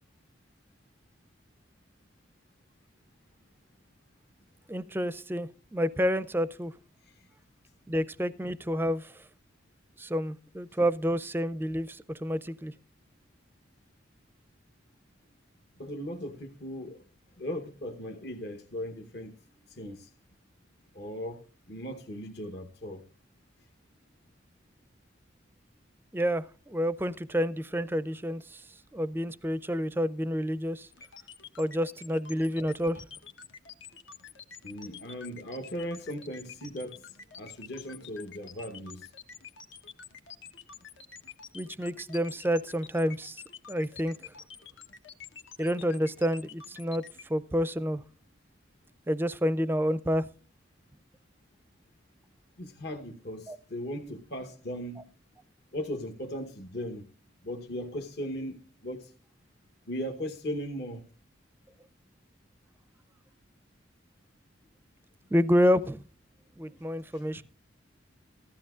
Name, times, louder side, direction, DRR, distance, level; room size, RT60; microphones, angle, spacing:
voice 1, 4.7-6.7 7.9-9.2 10.0-12.7 26.1-28.6 28.9-30.9 31.6-33.0 41.5-44.3 45.6-47.0 47.3-48.0 49.1-50.3 53.5-53.6 65.3-66.0 66.6-67.4, equal, 10° right, 0.4 m, -29 dB
voice 2, 15.8-17.0 17.4-19.3 19.7-20.1 20.9-23.0 34.6-39.1 52.6-55.1 55.7-57.0 57.4-59.1 59.9-61.1 67.1-67.2, equal, 55° left, 1.0 m, -38 dB
sound 1, 30.9-47.2, left 7 dB, 75° left, 1.1 m, -47 dB
15.5 x 13.0 x 2.5 m
head